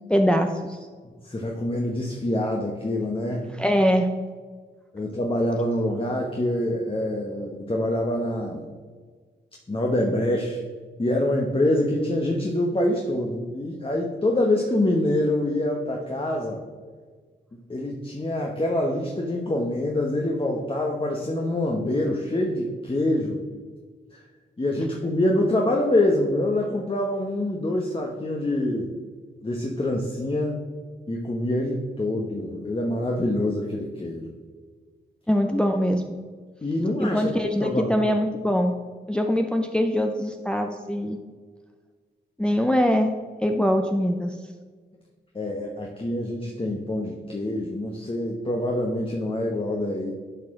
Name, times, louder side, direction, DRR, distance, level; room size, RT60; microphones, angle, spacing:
voice 1, 0.1-0.8 3.6-4.1 35.3-36.0 37.0-38.7 39.1-41.2 42.4-43.1 43.4-44.4, equal, 5° left, 4 dB, 0.6 m, -22 dB
voice 2, 1.2-3.6 4.9-8.6 9.7-10.6 11.0-16.6 17.7-23.4 24.6-28.9 29.4-30.6 31.1-34.3 36.6-37.3 37.6-38.1 45.3-50.1, left 1 dB, 30° left, 0 dB, 1.1 m, -25 dB
10.0 x 4.8 x 3.7 m, 1.5 s
cardioid pair, 50°, 20 cm